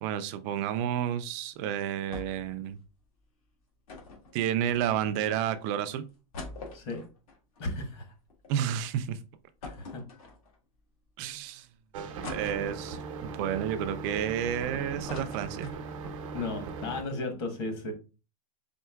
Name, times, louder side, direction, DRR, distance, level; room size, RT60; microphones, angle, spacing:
voice 1, 0.0-2.8 4.3-6.0 8.5-9.2 11.2-11.7 12.3-15.7, right 10 dB, 30° right, 11 dB, 0.4 m, -31 dB
sound 1, 2.1-2.5 2.8-2.9 3.9-5.1 5.7-5.8 6.1-8.5 8.9-9.0 9.6-10.7 11.3-11.4 12.2-13.1 13.6-14.6 14.8-16.2 16.5-16.6 16.9-17.1, left 3 dB, 80° left, 1.6 m, -44 dB
voice 2, 7.6-8.1 9.6-10.0 12.0-12.1 16.3-17.9, left 2 dB, 50° left, 5 dB, 1.2 m, -35 dB
sound 2, 11.9-17.0, right 4 dB, 65° right, 0.8 m, -39 dB
4.4 x 3.7 x 2.3 m, 0.32 s
supercardioid pair, 170°, 18 cm